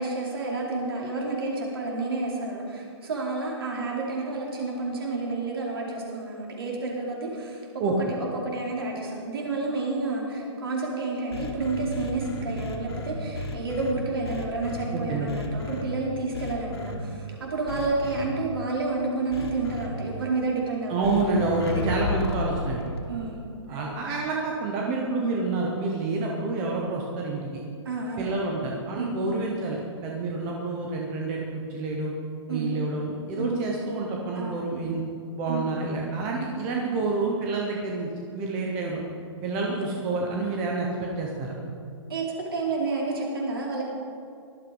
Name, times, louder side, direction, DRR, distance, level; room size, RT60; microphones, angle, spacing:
voice 1, 0.0-7.6 8.0-21.1 21.7-21.8 23.1-23.4 23.7-23.9 27.8-28.3 28.9-29.3 32.5-32.8 33.4-33.7 34.4-34.8 35.5-35.8 39.7-39.8 42.1-42.2 42.5-43.8, right 3 dB, 50° right, -3 dB, 4.3 m, -30 dB
sound 1, 11.3-13.9 14.2-14.8 15.3-15.8 16.3-17.0 17.7-18.2 19.3-19.9 21.0-23.0, left 2 dB, 55° left, 2.5 m, -33 dB
voice 2, 14.9-15.3 20.9-22.8 23.7-27.6 28.2-32.1 32.5-35.0 35.4-39.0 39.4-41.5, right 3 dB, 5° right, -1 dB, 0.4 m, -28 dB
17.5 x 12.5 x 5.1 m, 2.4 s
hypercardioid pair, 180°, 16 cm